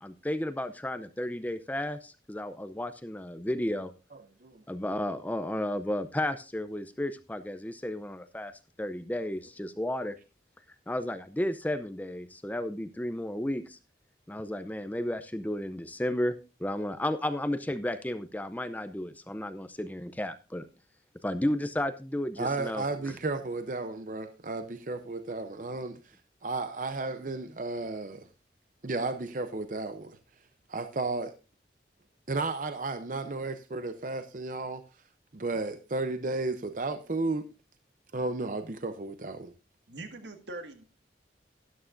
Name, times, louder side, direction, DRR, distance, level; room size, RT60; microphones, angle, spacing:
voice 1, 0.0-3.9 4.7-8.5 8.8-10.2 10.9-13.8 14.3-20.7 21.2-22.8, left 1 dB, 10° left, 11 dB, 0.5 m, -33 dB
voice 2, 22.4-26.2 26.4-28.3 28.8-30.2 30.7-31.3 32.3-34.8 35.3-37.5 38.1-39.5, right 3 dB, 45° right, 9 dB, 0.6 m, -33 dB
voice 3, 39.9-40.8, right 2 dB, 85° right, 6 dB, 1.7 m, -42 dB
12.5 x 11.0 x 2.5 m, 0.31 s
head